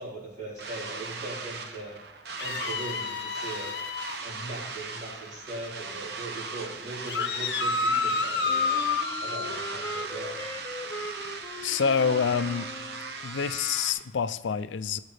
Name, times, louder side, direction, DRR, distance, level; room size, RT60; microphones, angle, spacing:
voice 1, 0.0-1.9 2.4-3.7 4.2-8.8 9.2-10.3, right 2 dB, 45° right, -6 dB, 4.1 m, -40 dB
sound 1, 0.6-13.9, right 3 dB, 60° right, 0.9 m, -38 dB
sound 2, 2.4-4.2 7.1-9.1, left 5 dB, 60° left, 0.8 m, -29 dB
Wind instrument woodwind instrument, 8.5-13.2, left 1 dB, 10° left, 0.8 m, -40 dB
voice 2, 11.6-12.7 13.2-15.0, left 6 dB, 75° left, 14 dB, 0.4 m, -27 dB
17.0 x 7.2 x 3.4 m, 0.92 s
head